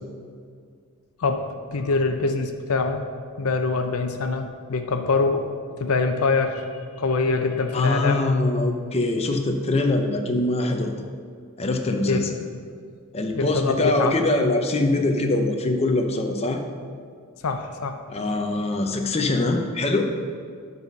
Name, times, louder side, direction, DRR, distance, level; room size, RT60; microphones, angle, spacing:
voice 1, 1.7-3.0 3.4-5.5 5.8-6.6 7.0-8.3 12.1-12.3 13.3-14.2 17.4-18.0, left 3 dB, 70° left, 6 dB, 0.6 m, -24 dB
voice 2, 7.7-10.9 11.6-12.4 13.1-16.6 18.1-20.1, left 2 dB, 30° left, 3 dB, 0.6 m, -23 dB
12.0 x 4.2 x 5.4 m, 2.1 s
head